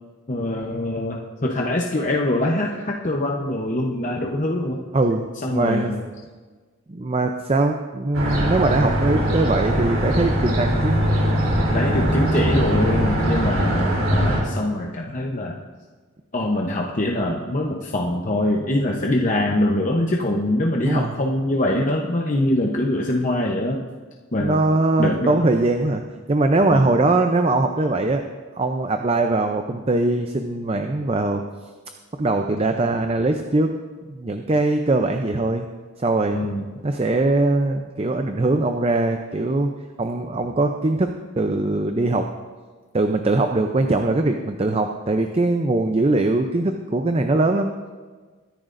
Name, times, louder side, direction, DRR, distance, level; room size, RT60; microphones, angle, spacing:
voice 1, 0.3-4.8 5.4-6.0 11.7-15.6 16.3-23.8 24.3-24.6 25.0-25.5 26.7-26.9 36.3-36.6, left 1 dB, 35° left, -1 dB, 0.9 m, -23 dB
voice 2, 4.9-5.9 6.9-11.0 20.8-21.1 24.4-26.0 26.3-28.2 28.6-31.4 32.2-33.7 34.1-35.7 36.0-36.4 36.8-39.7 40.0-41.1 41.4-42.3 42.9-47.7, right 2 dB, 30° right, 5 dB, 0.5 m, -21 dB
sound 1, 8.1-14.4, equal, 80° right, 3.2 m, -21 dB
22.0 x 10.5 x 2.6 m, 1.4 s
head